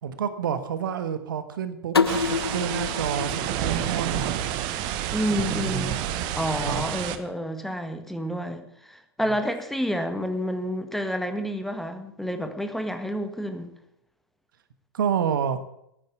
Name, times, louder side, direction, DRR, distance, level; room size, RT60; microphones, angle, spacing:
voice 1, 0.0-4.5 5.5-6.1 6.6-6.8 14.9-15.6, right 8 dB, 60° right, 11 dB, 1.4 m, -29 dB
sound 1, 1.9-4.8, left 5 dB, 75° left, 0.8 m, -28 dB
sound 2, 2.1-7.2, right 11 dB, 40° right, 1.3 m, -29 dB
voice 2, 5.1-6.0 6.4-13.7, equal, ahead, 7 dB, 1.6 m, -29 dB
13.5 x 9.9 x 8.2 m, 0.77 s
figure-of-eight pair, 100°, 13 cm